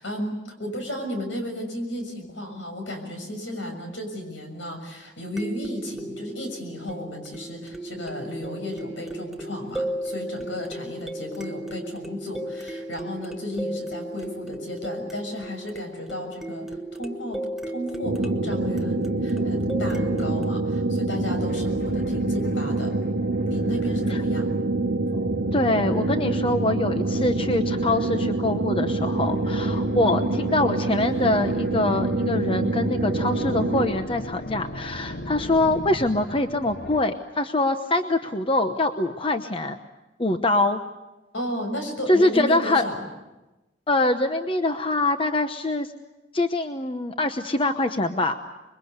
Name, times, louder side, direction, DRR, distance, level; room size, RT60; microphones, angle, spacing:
voice 1, 0.0-16.7 16.9-22.9 23.5-24.5 41.3-43.0, left 1 dB, 75° left, 5 dB, 6.6 m, -34 dB
sound 1, 0.7-0.8 5.4-20.5, right 1 dB, ahead, 1.0 m, -35 dB
sound 2, 18.0-33.9, right 2 dB, 70° right, 1.1 m, -26 dB
sound 3, 19.4-20.7 21.3-24.5 25.1-26.5 27.0-28.5 29.0-37.0, left 1 dB, 55° left, 1.2 m, -40 dB
voice 2, 25.5-39.8 40.2-40.8 42.1-42.9 43.9-45.9 46.3-48.4, left 2 dB, 30° left, 7 dB, 0.9 m, -24 dB
26.0 x 22.5 x 8.2 m, 1.0 s
head